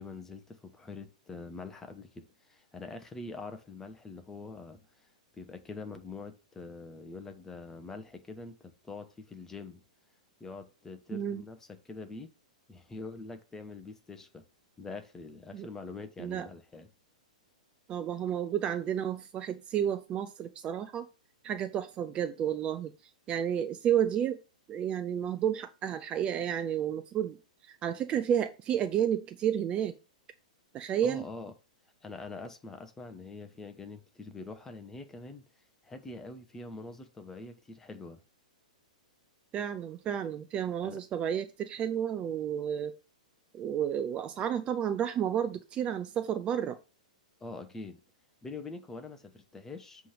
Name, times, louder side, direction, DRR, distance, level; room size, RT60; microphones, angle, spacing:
voice 1, 0.0-4.8 5.3-9.8 10.4-12.3 12.7-14.4 14.8-16.9 31.0-31.5 32.0-35.4 35.8-38.2 40.8-41.0 47.4-48.0 48.4-50.1, left 3 dB, 10° left, 1.1 m, -44 dB
voice 2, 11.1-11.4 15.5-15.7 16.2-16.5 17.9-21.1 21.4-22.9 23.3-24.4 24.7-27.4 27.7-29.9 30.7-31.2 39.5-42.9 43.5-46.8, right 9 dB, 25° right, 0.5 m, -31 dB
7.5 x 3.5 x 6.4 m
figure-of-eight pair, 110°, 4 cm